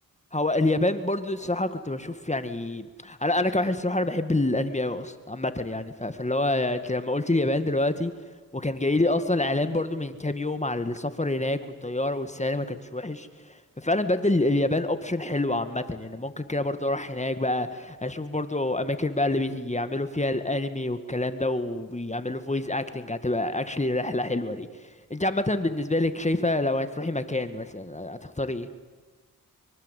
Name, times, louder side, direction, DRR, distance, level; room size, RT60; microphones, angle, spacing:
voice 1, 0.3-8.1 8.5-24.7 25.1-28.7, left 2 dB, 20° left, 10 dB, 2.0 m, -27 dB
24.5 x 23.5 x 8.4 m, 1.3 s
cardioid pair, 55°, 35 cm